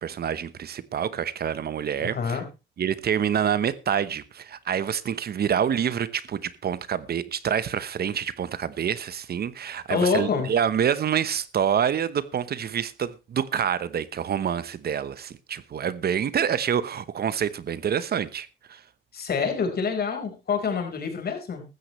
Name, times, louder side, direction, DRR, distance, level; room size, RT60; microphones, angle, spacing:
voice 1, 0.0-2.4 2.8-18.8, right 8 dB, 50° right, 1.0 m, -27 dB
voice 2, 2.0-2.4 9.9-10.5 19.1-21.6, left 5 dB, 50° left, 4.5 m, -26 dB
15.0 x 13.5 x 3.1 m
cardioid pair, 90°, 20 cm